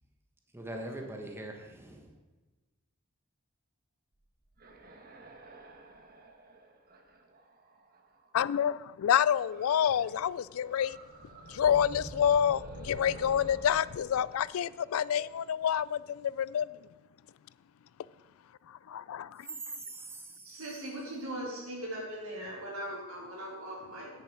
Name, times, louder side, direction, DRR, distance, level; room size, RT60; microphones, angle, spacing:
voice 1, 0.5-2.1 19.8-20.5, right 1 dB, 10° right, 2 dB, 1.3 m, -42 dB
sound 1, 4.2-8.4 9.5-10.3 10.5-15.4, right 1 dB, 45° right, 1.3 m, -49 dB
voice 2, 8.3-11.0 11.5-16.7 18.9-19.5, left 9 dB, 75° left, 20 dB, 0.3 m, -28 dB
voice 3, 20.4-24.1, right 1 dB, 80° right, -4 dB, 4.2 m, -39 dB
9.9 x 9.7 x 5.0 m, 1.2 s
head